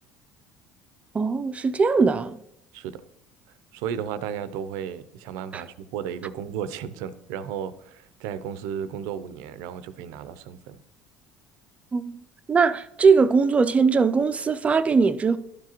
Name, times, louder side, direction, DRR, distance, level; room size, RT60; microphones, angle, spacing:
voice 1, 1.1-2.4 5.5-5.6 11.9-12.2 12.5-15.4, right 5 dB, 20° right, 0.4 m, -20 dB
voice 2, 3.7-10.8, right 8 dB, 80° right, 0.5 m, -34 dB
12.0 x 4.8 x 3.0 m
supercardioid pair, 105°, 6 cm